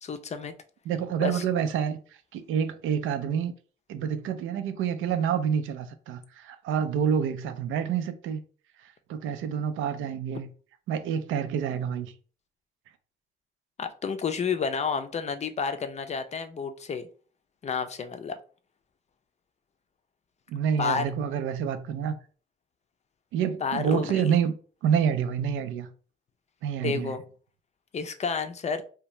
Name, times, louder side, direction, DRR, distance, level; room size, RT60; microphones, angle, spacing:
voice 1, 0.0-0.5 1.2-1.4 13.8-17.1 17.6-18.3 20.8-21.1 23.6-24.3 26.8-27.2 27.9-28.8, left 6 dB, 35° left, 0.4 m, -30 dB
voice 2, 0.9-2.0 2.3-3.5 3.9-8.4 8.8-10.5 10.9-12.1 20.5-22.2 23.3-25.9 26.6-27.2, right 8 dB, 85° right, 0.4 m, -28 dB
2.7 x 2.2 x 3.1 m
cardioid pair, 90°, 20 cm